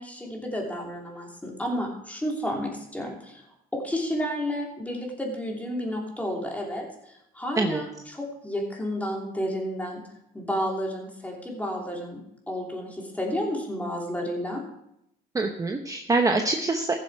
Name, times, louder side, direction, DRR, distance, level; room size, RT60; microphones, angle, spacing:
voice 1, 0.0-3.4 3.7-10.0 10.3-14.6, equal, 10° left, -1 dB, 3.0 m, -31 dB
voice 2, 15.3-17.0, right 3 dB, 20° right, 4 dB, 0.9 m, -24 dB
15.0 x 7.6 x 4.7 m, 0.79 s
cardioid pair, 110°, 17 cm